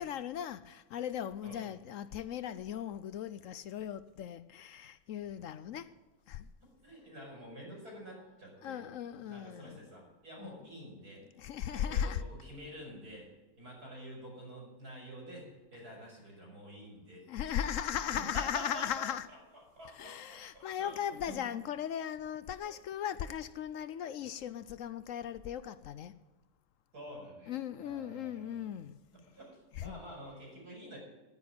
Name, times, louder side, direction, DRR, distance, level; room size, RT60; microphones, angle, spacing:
voice 1, 0.0-5.9 6.3-6.5 8.6-9.9 10.4-10.5 11.4-12.2 17.3-19.3 19.8-26.1 27.5-29.0 29.7-30.0, left 9 dB, 65° left, 0.9 m, -38 dB
voice 2, 6.8-8.8 9.2-11.3 11.7-13.3 13.6-17.5 18.0-19.1 19.8-20.9 21.3-21.4 26.9-28.7 29.1-31.0, equal, 85° right, 6.1 m, -48 dB
11.0 x 9.8 x 9.4 m
omnidirectional pair, 1.6 m